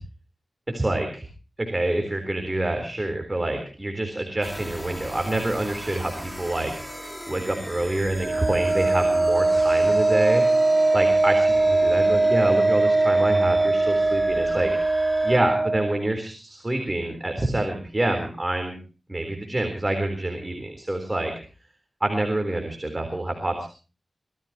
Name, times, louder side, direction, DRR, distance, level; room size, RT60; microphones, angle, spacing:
voice 1, 0.7-1.2 1.6-10.4 10.9-14.7 15.2-18.8 19.1-21.3 22.0-23.7, right 1 dB, 20° right, 4 dB, 3.9 m, -27 dB
sound 1, 4.4-15.4, equal, ahead, 2.1 m, -38 dB
Wind instrument woodwind instrument, 8.2-16.0, right 2 dB, 45° right, 2.7 m, -21 dB
25.5 x 17.0 x 3.0 m, 0.37 s
wide cardioid pair, 110°, 0 cm